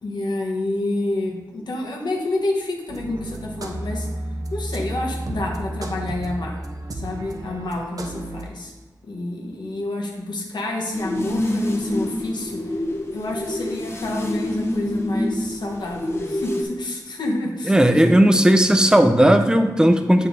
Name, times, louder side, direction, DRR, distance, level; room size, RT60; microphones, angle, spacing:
voice 1, 0.0-4.1 4.5-6.6 6.9-8.7 9.0-12.6 13.1-17.7 18.0-18.2, left 2 dB, 90° left, 0 dB, 1.3 m, -28 dB
sound 1, 2.9-8.5, right 1 dB, 55° right, 0.7 m, -32 dB
sound 2, 10.9-16.6, left 1 dB, 35° left, 0.9 m, -26 dB
voice 2, 17.7-20.3, right 1 dB, 10° right, 7 dB, 0.6 m, -15 dB
7.7 x 5.7 x 3.7 m, 1.1 s
wide cardioid pair, 90°, 7 cm